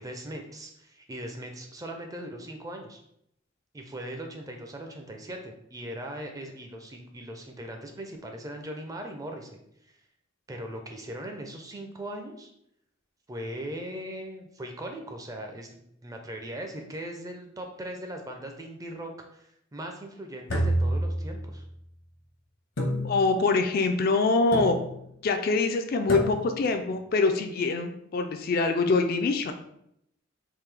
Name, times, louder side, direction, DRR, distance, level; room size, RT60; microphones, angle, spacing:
voice 1, 0.0-3.0 3.7-9.6 10.5-12.5 13.3-21.7, right 1 dB, 15° right, 3 dB, 0.4 m, -39 dB
sound 1, 20.5-21.7 22.8-23.6 24.5-25.1 26.1-26.8, equal, 70° left, 0.8 m, -29 dB
voice 2, 23.0-24.8 25.2-29.5, left 3 dB, 50° left, 6 dB, 0.3 m, -24 dB
3.6 x 2.6 x 3.3 m, 0.74 s
head